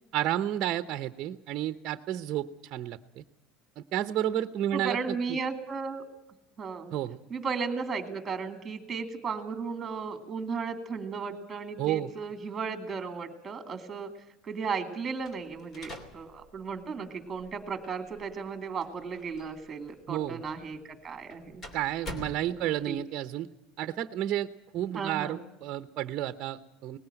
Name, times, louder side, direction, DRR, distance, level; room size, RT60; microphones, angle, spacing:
voice 1, 0.1-3.2 3.8-5.4 6.9-7.2 11.8-12.1 20.1-20.4 21.7-23.5 23.8-24.5 24.7-27.0, right 12 dB, 45° right, 10 dB, 0.8 m, -31 dB
voice 2, 4.7-6.0 6.6-6.9 7.3-14.1 14.4-21.6 22.5-23.0 24.9-25.4, right 5 dB, 20° right, 8 dB, 2.5 m, -35 dB
sound 1, 15.2-23.0, left 1 dB, 30° left, 2.9 m, -47 dB
19.5 x 17.0 x 9.0 m, 0.87 s
cardioid pair, 140°, 0 cm